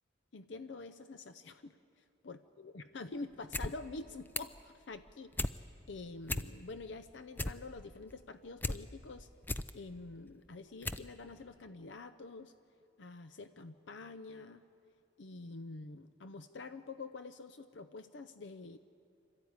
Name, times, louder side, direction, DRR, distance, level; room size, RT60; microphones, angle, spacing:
voice 1, 0.3-5.6 5.9-9.3 9.7-12.5 13.0-14.6 15.2-18.8, left 3 dB, 65° left, 11 dB, 0.6 m, -47 dB
sound 1, 3.3-3.7 4.0-4.6 5.0-5.6 5.9-6.0 6.2-6.8 7.1-8.8 9.2-9.7 10.3-10.4 10.8-11.1 11.4-11.5, left 2 dB, 10° left, 0.5 m, -37 dB
25.5 x 13.5 x 9.6 m, 2.6 s
head